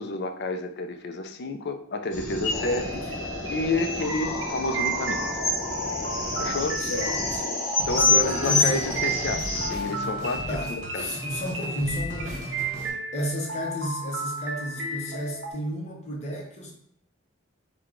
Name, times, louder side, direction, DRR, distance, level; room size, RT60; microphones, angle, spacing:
voice 1, 0.0-2.9 3.5-5.4 6.4-6.8 7.9-11.2, left 2 dB, 55° left, 7 dB, 0.4 m, -30 dB
sound 1, 2.1-9.7, left 3 dB, 85° left, 0.9 m, -27 dB
sound 2, 2.5-15.5, right 2 dB, 60° right, 0.7 m, -34 dB
voice 2, 2.6-2.9 6.8-7.5 8.0-8.7 10.5-12.6 13.1-16.7, equal, 35° left, 0 dB, 0.8 m, -32 dB
sound 3, 7.8-12.9, equal, 40° right, 1.1 m, -37 dB
4.7 x 2.2 x 3.7 m, 0.65 s
head